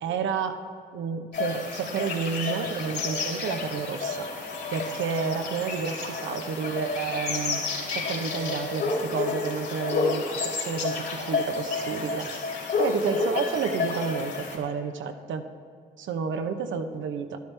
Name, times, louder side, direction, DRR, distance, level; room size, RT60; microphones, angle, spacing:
voice 1, 0.0-0.6 0.9-4.3 4.7-7.6 7.9-10.3 10.6-12.3 12.8-15.4 16.0-17.4, right 6 dB, 70° right, 7 dB, 0.9 m, -30 dB
sound 1, 1.3-14.6, left 3 dB, 55° left, 2.6 m, -30 dB
12.0 x 11.0 x 3.4 m, 2.3 s
supercardioid pair, 55°, 21 cm